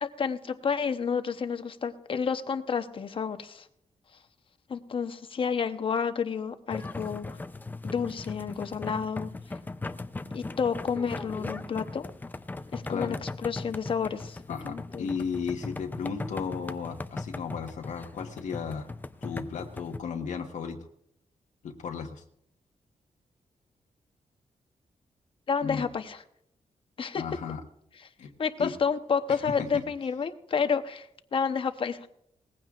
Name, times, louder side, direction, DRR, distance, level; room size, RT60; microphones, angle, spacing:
voice 1, 0.0-3.7 4.7-7.3 7.8-9.3 10.3-12.1 12.7-14.4 14.7-15.1 25.5-26.2 27.0-27.2 28.4-31.1 31.3-32.0, left 6 dB, 45° left, 9 dB, 0.9 m, -30 dB
sound 1, 6.7-20.0, left 3 dB, 15° left, 0.5 m, -39 dB
voice 2, 14.5-18.9 19.2-20.8 21.6-22.2 25.6-25.9 27.1-27.6 28.2-28.3 28.6-28.7 29.3-29.8, left 6 dB, 85° left, 3 dB, 1.2 m, -35 dB
19.5 x 15.5 x 2.4 m, 0.72 s
wide cardioid pair, 145°, 12 cm